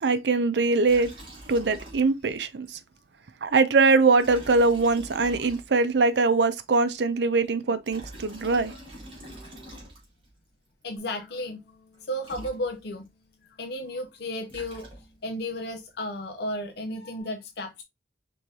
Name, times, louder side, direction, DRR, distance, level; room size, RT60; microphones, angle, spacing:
voice 1, 0.0-1.1 1.5-2.8 3.4-8.7, right 3 dB, 70° right, 0.5 m, -22 dB
Liquid, 0.8-2.4 2.6-2.7 4.1-6.0 7.6-10.3 11.9-12.0 12.2-13.1 14.2-15.3, right 1 dB, 30° right, 2.2 m, -44 dB
voice 2, 10.8-11.7 12.1-13.1 13.6-14.9 15.2-17.8, left 1 dB, 65° left, 0.6 m, -33 dB
Bass guitar, 11.0-17.2, left 2 dB, 5° right, 2.6 m, -64 dB
4.7 x 3.5 x 2.7 m
head